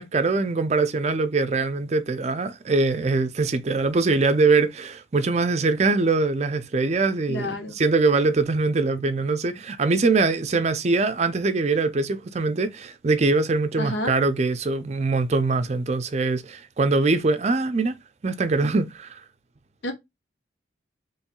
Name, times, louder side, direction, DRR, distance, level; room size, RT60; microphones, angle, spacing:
voice 1, 0.0-17.9 18.2-19.2, right 3 dB, 35° right, 0.5 m, -23 dB
voice 2, 7.3-7.7 13.8-14.1 19.8-19.9, left 1 dB, 80° left, 1.0 m, -29 dB
4.4 x 3.1 x 2.2 m
head